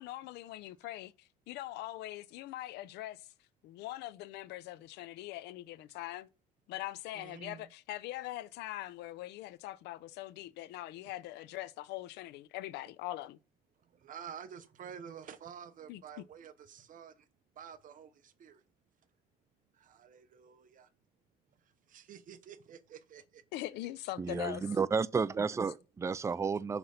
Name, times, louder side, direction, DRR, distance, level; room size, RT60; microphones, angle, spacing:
voice 1, 0.0-3.3 3.6-6.3 6.7-13.4 15.9-16.0 23.5-24.6, left 16 dB, 85° left, 0.6 m, -42 dB
voice 2, 7.1-7.7 13.8-17.3 17.6-18.6 19.7-20.9 21.6-23.4 24.3-24.4, right 8 dB, 50° right, 1.0 m, -50 dB
voice 3, 24.2-26.8, right 5 dB, 15° right, 0.4 m, -32 dB
5.9 x 5.5 x 6.5 m
cardioid pair, 110°, 17 cm